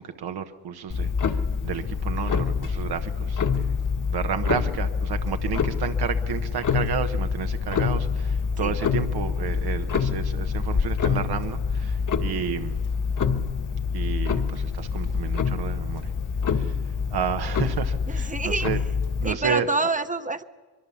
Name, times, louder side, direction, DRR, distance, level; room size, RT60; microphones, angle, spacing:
voice 1, 0.0-3.7 4.1-12.8 13.9-16.1 16.5-18.8 19.2-19.9, right 8 dB, 90° right, 7 dB, 1.1 m, -31 dB
Clock, 0.9-19.3, left 6 dB, 55° left, 1.5 m, -26 dB
voice 2, 18.1-18.7 19.2-20.4, right 3 dB, 20° right, 10 dB, 0.7 m, -27 dB
23.0 x 23.0 x 7.1 m, 1.4 s
cardioid pair, 90°, 37 cm